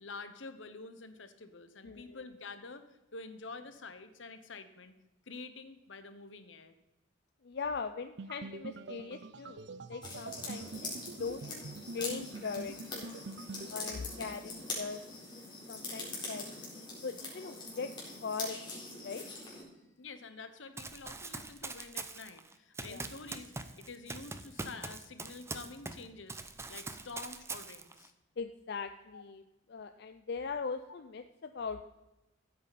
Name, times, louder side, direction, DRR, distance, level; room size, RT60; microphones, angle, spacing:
voice 1, 0.0-5.0 5.3-6.7 20.0-26.4 26.7-28.1 29.1-29.2, left 3 dB, 80° left, 10 dB, 1.1 m, -48 dB
voice 2, 1.8-2.2 7.4-11.6 11.9-13.1 13.7-15.0 15.7-17.9 18.2-19.2 22.8-23.1 28.4-29.4 29.7-31.8, left 5 dB, 60° left, 8 dB, 0.5 m, -40 dB
sound 1, 8.2-13.7, right 3 dB, 65° right, 0.6 m, -45 dB
sound 2, 10.0-19.6, left 2 dB, 25° left, 4.1 m, -43 dB
Run, 20.8-26.0 26.3-28.1, right 3 dB, 15° right, 0.7 m, -43 dB
15.5 x 8.7 x 4.2 m, 0.99 s
head